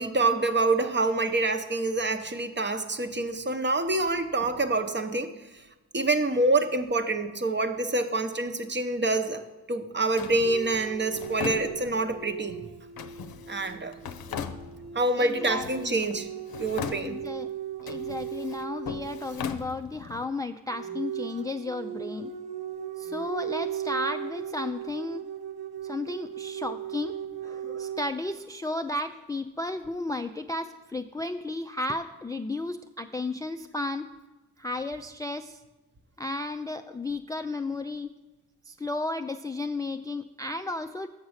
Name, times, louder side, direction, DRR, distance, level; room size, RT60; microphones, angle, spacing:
voice 1, 0.0-5.3 5.9-9.4 9.7-12.6 13.5-13.9 14.9-16.3 16.6-17.2, right 2 dB, 30° right, 9 dB, 0.8 m, -26 dB
Drawer open or close, 10.2-12.2 13.0-15.1 15.4-16.2 16.5-17.4 17.8-20.2, left 7 dB, 75° left, 0.7 m, -39 dB
sound 1, 10.4-19.5 20.7-28.0, right 9 dB, 85° right, 0.7 m, -37 dB
voice 2, 15.2-16.1 17.0-17.5 17.8-22.3 23.0-25.2 25.8-27.2 27.4-34.1 34.6-35.6 36.2-38.1 38.7-41.1, left 2 dB, 10° left, 8 dB, 0.3 m, -33 dB
7.3 x 6.1 x 6.4 m, 1.1 s
cardioid pair, 60°, 37 cm